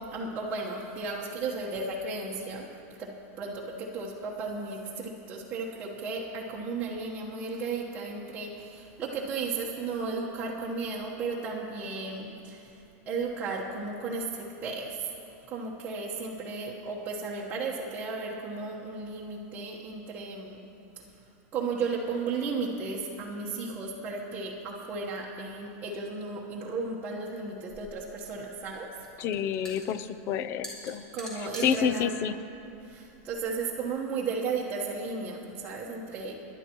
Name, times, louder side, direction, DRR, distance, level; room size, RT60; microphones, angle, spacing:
voice 1, 0.1-2.7 3.0-3.1 3.4-12.8 13.1-15.1 15.5-20.6 21.5-28.9 31.1-32.1 32.8-36.4, right 4 dB, 20° right, -5 dB, 1.2 m, -34 dB
sound 1, 27.7-33.8, equal, 10° left, 3.0 m, -47 dB
voice 2, 29.2-31.1 31.4-32.4, left 8 dB, 30° left, 14 dB, 0.4 m, -29 dB
27.0 x 11.5 x 3.0 m, 2.8 s
supercardioid pair, 165°, 8 cm